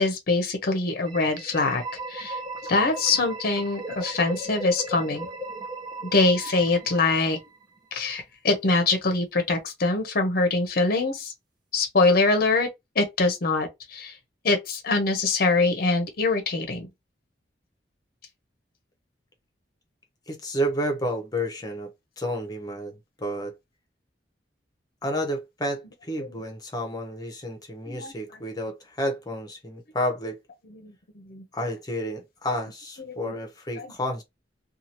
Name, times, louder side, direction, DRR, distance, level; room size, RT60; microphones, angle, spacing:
voice 1, 0.0-1.8 2.1-2.4 2.7-5.3 6.1-7.4 7.9-11.3 11.7-12.7 13.0-14.1 14.4-16.9 26.3-26.4 27.9-28.1 30.8-30.9 31.3-31.4 33.2-33.3 33.8-33.9, left 3 dB, 55° left, 0.7 m, -23 dB
sound 1, 1.0-7.8, right 2 dB, 25° right, 0.7 m, -37 dB
voice 2, 20.3-23.6 25.0-30.4 31.5-34.2, equal, 20° left, 0.8 m, -31 dB
2.7 x 2.4 x 2.9 m
head